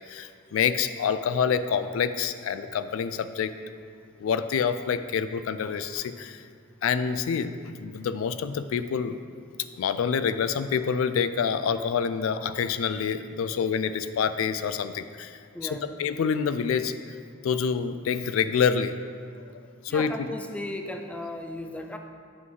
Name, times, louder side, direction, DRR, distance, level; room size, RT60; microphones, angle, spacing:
voice 1, 0.1-3.5 4.2-6.4 6.8-9.2 9.8-16.9 17.4-18.9 19.8-20.3, left 6 dB, 85° left, 11 dB, 0.3 m, -27 dB
voice 2, 15.5-15.9 19.9-22.0, left 1 dB, 5° left, 4 dB, 0.4 m, -36 dB
7.7 x 5.9 x 3.8 m, 2.2 s
head